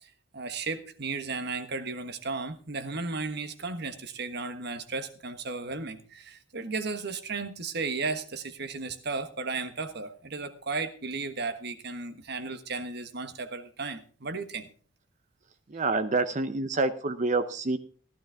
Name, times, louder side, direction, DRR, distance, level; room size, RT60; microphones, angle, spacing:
voice 1, 0.0-14.7, right 4 dB, 60° right, 10 dB, 1.3 m, -35 dB
voice 2, 15.7-17.8, right 3 dB, 40° right, 11 dB, 0.7 m, -27 dB
15.5 x 12.0 x 3.5 m, 0.41 s
head